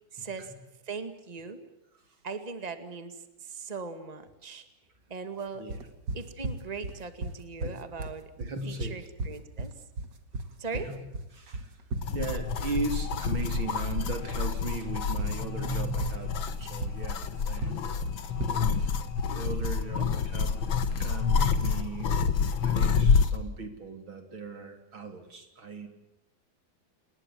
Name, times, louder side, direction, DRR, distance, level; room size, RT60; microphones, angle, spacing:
voice 1, 0.1-0.5 0.9-1.6 2.2-4.7 5.1-5.6 6.1-8.3 8.7-9.7 10.6-10.9 20.0-20.2, right 4 dB, 20° right, 9 dB, 2.1 m, -39 dB
sound 1, 5.7-22.7, right 2 dB, 60° right, 2.4 m, -37 dB
voice 2, 8.4-9.0 10.7-11.0 11.3-11.8 12.1-18.0 18.2-18.3 18.6-18.9 19.3-20.6 21.0-22.1 22.6-25.9, right 3 dB, 80° right, 6 dB, 4.2 m, -38 dB
sound 2, 12.0-23.4, left 6 dB, 75° left, 2.2 m, -28 dB
29.5 x 20.5 x 7.5 m, 0.91 s
omnidirectional pair, 2.2 m